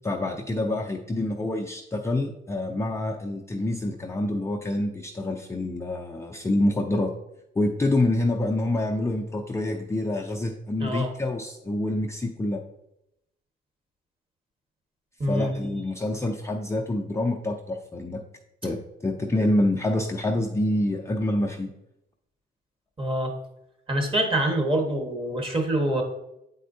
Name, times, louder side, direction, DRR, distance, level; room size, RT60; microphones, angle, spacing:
voice 1, 0.0-7.1 7.6-12.6 15.3-18.2 18.6-21.7, left 1 dB, 15° left, 0 dB, 0.5 m, -27 dB
voice 2, 15.2-15.5 23.0-23.3 23.9-26.0, right 1 dB, 25° right, 2 dB, 1.4 m, -25 dB
8.4 x 4.2 x 2.7 m, 0.84 s
cardioid pair, 90°, 20 cm